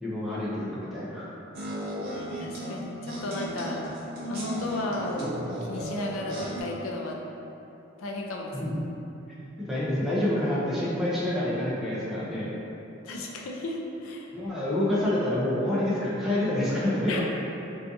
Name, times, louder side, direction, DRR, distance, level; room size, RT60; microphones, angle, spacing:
voice 1, 0.0-1.3 8.5-8.8 9.7-12.5 14.3-17.2, left 1 dB, ahead, -9 dB, 0.4 m, -27 dB
sound 1, 1.5-6.6, equal, 50° right, 0.5 m, -34 dB
voice 2, 2.4-3.8 4.3-7.2 8.0-8.6 13.0-14.3 14.7-14.9 17.1-17.2, left 2 dB, 80° left, 0 dB, 0.4 m, -34 dB
2.4 x 2.4 x 2.6 m, 2.9 s
head